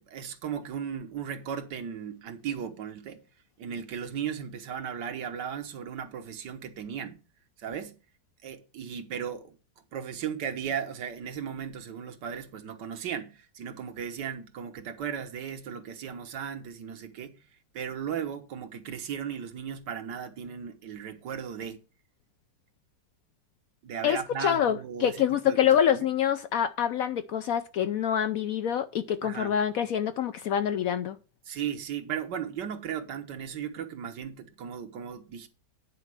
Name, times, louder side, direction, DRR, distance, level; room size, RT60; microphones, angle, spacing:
voice 1, 0.0-3.2 3.6-7.2 7.6-7.9 8.4-9.6 9.9-17.4 17.7-21.8 23.8-26.1 29.2-29.5 31.5-35.5, right 8 dB, 75° right, 1.7 m, -36 dB
voice 2, 24.0-31.2, left 9 dB, 70° left, 0.8 m, -26 dB
9.9 x 4.4 x 6.1 m
omnidirectional pair, 1.9 m